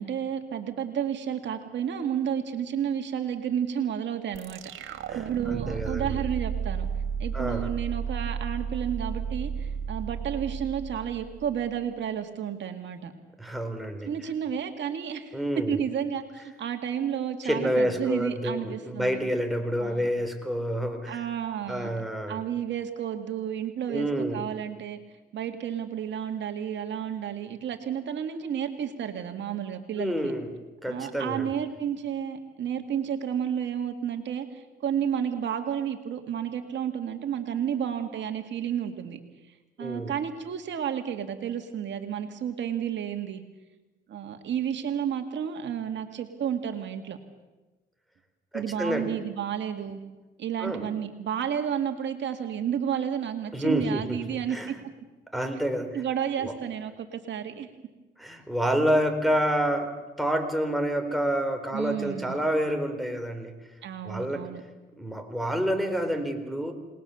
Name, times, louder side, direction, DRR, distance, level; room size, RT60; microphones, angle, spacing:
voice 1, 0.0-6.9 7.2-13.1 14.0-15.4 15.7-19.2 19.8-20.1 21.1-21.9 22.3-25.0 25.3-30.3 30.8-39.2 39.8-43.4 44.1-47.2 48.5-50.0 50.4-54.6 55.9-57.7 61.7-62.4 63.8-64.6, right 9 dB, 65° right, 6 dB, 2.1 m, -31 dB
sound 1, 4.3-11.6, right 7 dB, 85° right, 1.8 m, -33 dB
voice 2, 5.1-6.2 7.3-7.7 13.4-14.1 15.3-15.8 17.4-21.2 21.7-22.4 23.9-24.4 30.0-30.5 30.8-31.5 39.8-40.1 48.5-49.1 50.6-50.9 53.5-54.7 55.3-55.9 56.4-56.5 58.2-63.5 64.1-64.5 65.0-66.7, equal, ahead, 4 dB, 3.8 m, -28 dB
28.5 x 20.0 x 7.0 m, 1.2 s
cardioid pair, 90°, 20 cm